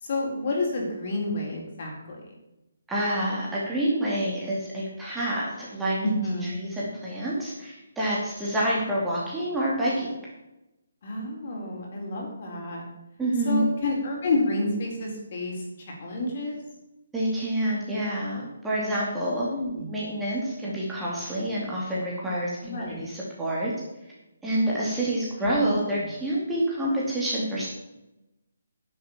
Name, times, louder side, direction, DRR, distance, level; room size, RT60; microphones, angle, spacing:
voice 1, 0.0-2.3 6.0-6.6 11.0-12.8 13.4-16.6 19.5-19.9 22.6-23.1 25.4-25.7, left 2 dB, 40° left, 0 dB, 4.2 m, -29 dB
voice 2, 2.9-6.0 6.6-10.1 13.2-13.7 17.1-19.5 19.9-23.7 24.4-27.7, right 1 dB, 5° right, -7 dB, 2.5 m, -27 dB
10.5 x 7.6 x 7.3 m, 0.95 s
hypercardioid pair, 165°, 0 cm